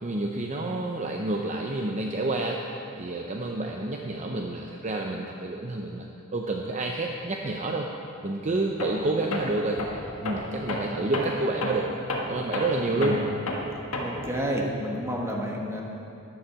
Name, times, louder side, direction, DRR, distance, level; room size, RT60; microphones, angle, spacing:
voice 1, 0.0-6.1 6.3-7.9 8.2-9.8 10.2-11.8 12.3-13.2, right 2 dB, 35° right, 1 dB, 0.6 m, -29 dB
Tools, 8.8-9.0 9.3-14.4, left 1 dB, 85° left, 1.5 m, -32 dB
voice 2, 12.9-13.2 14.0-15.8, equal, 15° right, -1 dB, 1.4 m, -30 dB
12.5 x 10.5 x 4.7 m, 2.7 s
head